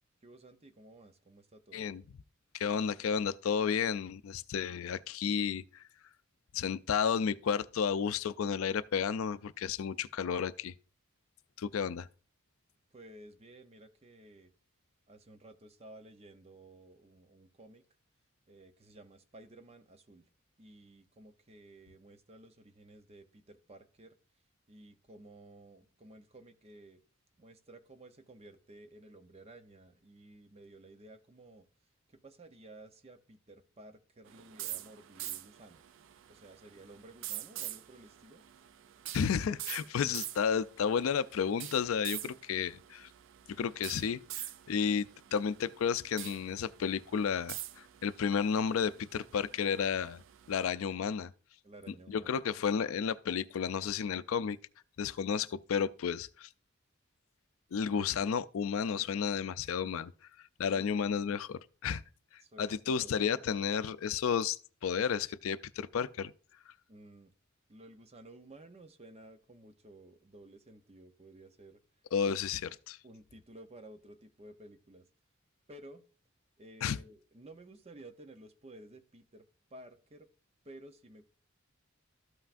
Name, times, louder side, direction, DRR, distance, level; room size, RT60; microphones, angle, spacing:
voice 1, 0.2-1.9 12.9-14.5 15.1-17.8 18.5-20.3 20.6-24.1 24.7-27.0 27.4-31.7 32.1-35.8 36.3-38.4 51.6-52.4 60.8-60.9 62.4-63.1 66.9-67.3 67.7-71.8 73.0-75.1 75.7-76.0 76.6-79.4 79.7-80.3 80.6-81.2, right 1 dB, 30° right, 0.7 m, -54 dB
voice 2, 2.5-5.8 6.5-10.7 11.6-12.1 39.1-43.1 43.5-50.2 50.5-51.3 51.9-54.6 55.0-56.5 57.7-60.1 60.6-62.0 62.6-64.6 64.8-66.3 72.1-73.0 76.8-77.0, left 7 dB, 75° left, 0.4 m, -32 dB
sound 1, 34.3-50.7, right 13 dB, 60° right, 0.4 m, -46 dB
13.0 x 5.7 x 2.5 m
head